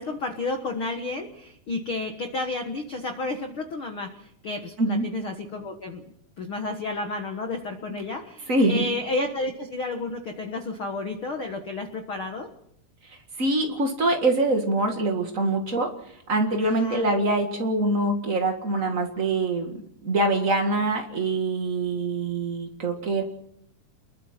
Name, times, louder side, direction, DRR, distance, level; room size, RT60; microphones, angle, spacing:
voice 1, 0.0-6.0 6.4-12.5 16.7-17.1, left 2 dB, 80° left, 4 dB, 1.1 m, -31 dB
voice 2, 8.5-8.8 13.4-15.9 16.3-23.2, right 2 dB, 55° right, 3 dB, 0.8 m, -24 dB
28.0 x 22.0 x 4.4 m, 0.71 s
omnidirectional pair, 4.8 m